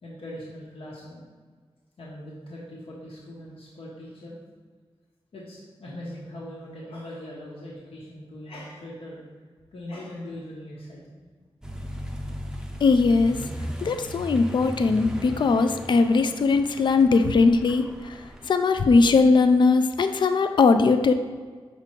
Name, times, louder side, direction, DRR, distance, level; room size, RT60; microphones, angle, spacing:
voice 1, 0.0-1.3 2.0-4.4 5.3-9.2 9.7-11.2, left 1 dB, 80° left, -5 dB, 1.2 m, -40 dB
Accelerating revving vroom, 11.6-18.5, equal, 5° right, 0.5 m, -37 dB
voice 2, 12.8-13.4 13.8-17.8 18.5-21.1, left 4 dB, 55° left, 8 dB, 0.4 m, -20 dB
5.9 x 3.7 x 4.5 m, 1.5 s
wide cardioid pair, 85°, 10 cm